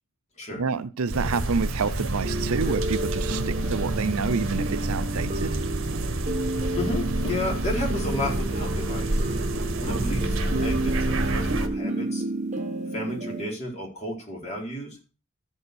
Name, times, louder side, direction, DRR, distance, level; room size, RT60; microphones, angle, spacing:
voice 1, 0.6-5.6, right 5 dB, 80° right, 0.6 m, -28 dB
sound 1, 1.1-11.7, right 1 dB, 65° right, 1.5 m, -28 dB
sound 2, 2.2-13.5, right 2 dB, 30° right, 1.3 m, -31 dB
voice 2, 6.7-9.2 9.8-12.2 12.9-15.0, left 1 dB, 30° left, 4.4 m, -32 dB
14.0 x 5.4 x 6.3 m
head